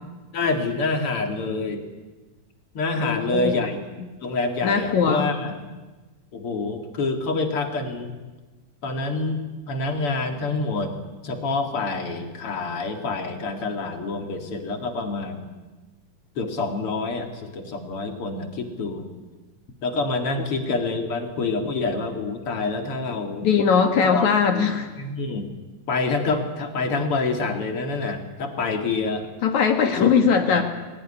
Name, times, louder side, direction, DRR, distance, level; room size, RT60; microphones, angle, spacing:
voice 1, 0.3-1.8 2.7-3.8 4.2-5.6 6.3-8.1 8.8-10.9 11.2-15.4 16.4-19.0 19.8-23.5 24.0-24.6 25.0-25.5 25.9-29.3 30.0-30.1 30.5-30.6, left 3 dB, 45° left, 4 dB, 2.8 m, -27 dB
voice 2, 3.0-3.7 4.6-5.3 23.4-24.9 29.4-30.6, left 6 dB, 60° left, 5 dB, 2.6 m, -20 dB
21.5 x 17.5 x 10.0 m, 1.2 s
omnidirectional pair, 4.0 m